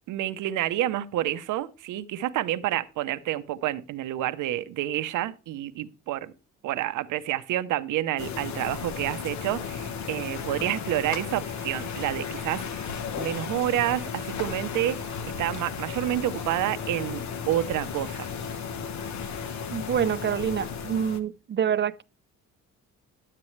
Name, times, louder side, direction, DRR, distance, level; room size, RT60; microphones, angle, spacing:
voice 1, 0.1-6.3 6.6-12.9 13.2-15.1 15.4-17.2 17.5-18.3, right 13 dB, 85° right, 0.7 m, -29 dB
sound 1, 8.2-21.2, left 6 dB, 65° left, 1.1 m, -34 dB
voice 2, 19.7-22.0, right 8 dB, 40° right, 0.5 m, -27 dB
11.0 x 7.5 x 3.1 m
cardioid pair, 90°, 30 cm